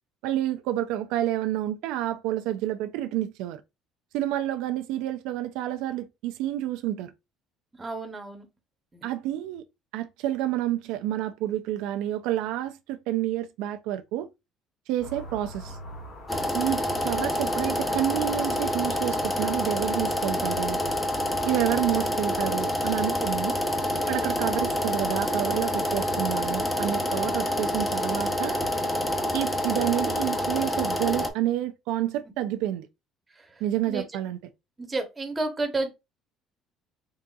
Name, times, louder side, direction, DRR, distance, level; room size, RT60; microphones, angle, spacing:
voice 1, 0.2-3.6 4.1-7.1 9.0-9.6 9.9-14.3 14.9-15.8 16.5-20.8 21.4-23.5 24.1-28.6 29.3-32.9 33.6-34.4, right 13 dB, 80° right, 0.4 m, -29 dB
voice 2, 7.8-8.5 8.9-9.1 23.1-23.3 33.9-34.0 34.8-35.9, right 2 dB, 15° right, 0.9 m, -31 dB
sound 1, 15.0-22.0, left 1 dB, 45° left, 1.8 m, -43 dB
sound 2, 16.3-31.3, left 1 dB, 15° left, 0.7 m, -27 dB
4.0 x 3.6 x 2.3 m
cardioid pair, 145°, 0 cm